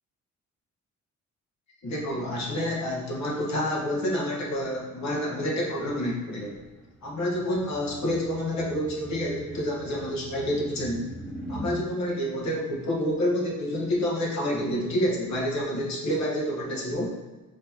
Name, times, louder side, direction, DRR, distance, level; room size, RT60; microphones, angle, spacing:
voice 1, 1.8-6.6 7.0-11.1 11.5-17.2, equal, 65° left, -2 dB, 1.3 m, -28 dB
sound 1, 6.5-11.8, equal, ahead, 1.1 m, -41 dB
5.6 x 3.3 x 2.9 m, 1.2 s
cardioid pair, 90°, 30 cm